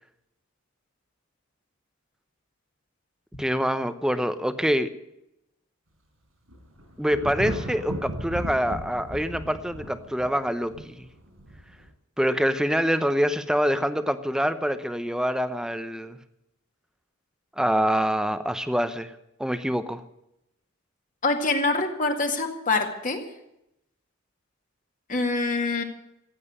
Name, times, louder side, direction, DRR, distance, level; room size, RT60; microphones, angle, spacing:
voice 1, 3.4-4.9 7.0-11.1 12.2-16.2 17.6-19.1 19.4-20.0, equal, 5° right, 11 dB, 0.8 m, -25 dB
Thunder, 6.5-11.9, right 1 dB, 85° right, 5.5 m, -36 dB
voice 2, 21.2-23.2 25.1-25.8, left 3 dB, 40° left, 4 dB, 2.1 m, -25 dB
15.5 x 9.3 x 9.9 m, 0.84 s
head